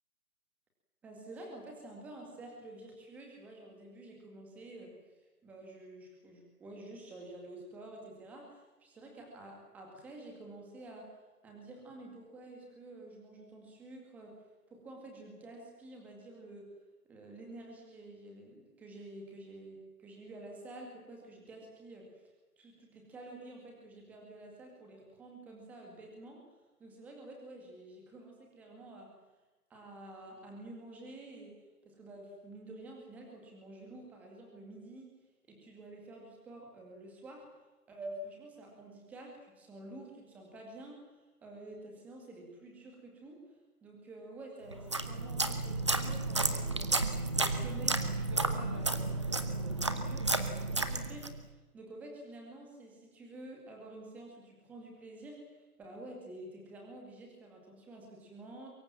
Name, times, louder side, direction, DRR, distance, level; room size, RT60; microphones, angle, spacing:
voice 1, 1.0-5.0 5.4-11.1 11.4-14.4 14.7-16.7 17.1-22.2 22.6-26.4 26.8-29.1 29.7-35.1 35.5-37.5 37.9-43.4 43.8-46.9 47.3-51.5 51.7-58.7, right 1 dB, 5° right, 1 dB, 2.1 m, -49 dB
sound 1, 44.7-51.4, right 2 dB, 20° right, 0.9 m, -32 dB
24.0 x 23.0 x 7.3 m, 1.1 s
figure-of-eight pair, 165°, 46 cm